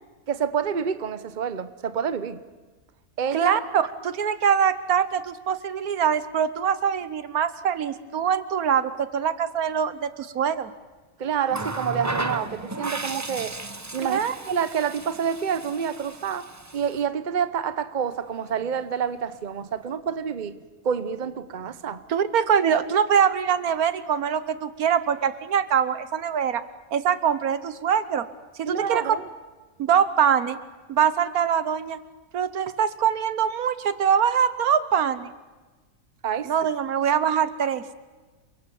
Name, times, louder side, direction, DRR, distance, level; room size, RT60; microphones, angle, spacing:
voice 1, 0.3-2.4 3.2-3.5 11.2-13.5 13.9-16.5 16.7-20.6 20.8-22.0 28.7-29.2 36.2-36.5, right 7 dB, 35° right, 13 dB, 1.0 m, -28 dB
voice 2, 3.3-10.7 14.0-14.3 22.1-26.6 26.9-28.3 28.6-29.1 29.8-30.6 30.9-32.0 32.3-35.3 36.5-37.8, right 8 dB, 75° right, 14 dB, 1.5 m, -23 dB
Water tap faucet, 11.5-17.0 18.3-18.5, right 2 dB, 15° right, 0.7 m, -34 dB
28.5 x 23.5 x 7.1 m, 1.3 s
omnidirectional pair, 1.6 m